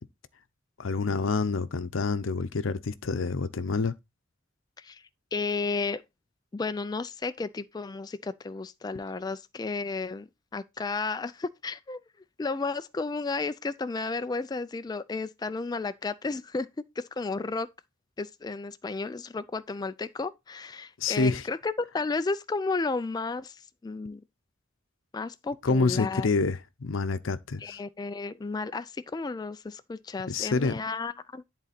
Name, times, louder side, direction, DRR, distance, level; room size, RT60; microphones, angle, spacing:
voice 1, 0.8-3.9 21.0-21.4 25.6-27.8 30.3-30.7, left 4 dB, 80° left, 0.7 m, -27 dB
voice 2, 5.3-6.0 6.5-12.0 12.4-16.7 17.0-17.7 18.2-24.2 25.1-26.3 27.6-31.4, left 3 dB, 20° left, 0.3 m, -33 dB
10.5 x 4.0 x 4.2 m
head